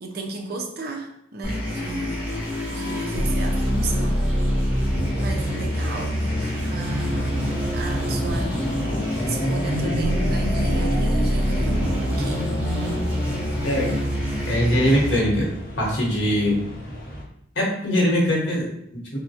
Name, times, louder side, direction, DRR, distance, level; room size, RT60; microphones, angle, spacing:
voice 1, 0.0-2.3 2.7-4.3 4.6-4.8 5.1-7.4 7.7-8.7 9.2-12.5, right 2 dB, 50° right, 2 dB, 0.4 m, -34 dB
sound 1, 1.4-15.2, equal, 5° right, 0.6 m, -25 dB
sound 2, 5.1-17.2, equal, 50° left, 0.6 m, -30 dB
voice 2, 14.5-15.5 15.8-16.6 17.5-19.2, equal, 65° left, -3 dB, 1.0 m, -22 dB
3.6 x 2.1 x 2.7 m, 0.74 s
head